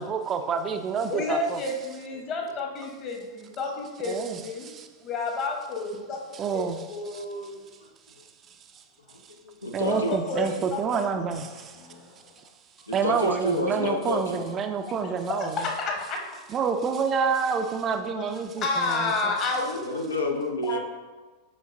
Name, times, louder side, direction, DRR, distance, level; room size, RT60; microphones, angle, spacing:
voice 1, 0.0-1.6 4.0-4.9 6.3-7.2 8.5-8.8 9.7-11.8 12.4-12.5 12.9-15.7 16.5-19.4, right 6 dB, 25° right, 7 dB, 0.4 m, -28 dB
voice 2, 1.1-4.7 5.0-6.6 6.9-7.6 9.9-11.1 11.8-12.2 15.4-16.2 18.1-18.2 18.6-19.8 20.7-20.8, left 3 dB, 35° left, 1 dB, 1.1 m, -30 dB
voice 3, 9.1-10.2 11.9-12.0 12.9-14.4 19.8-20.8, left 1 dB, 80° left, 3 dB, 0.6 m, -29 dB
7.2 x 5.1 x 2.6 m, 1.3 s
figure-of-eight pair, 90°, 0 cm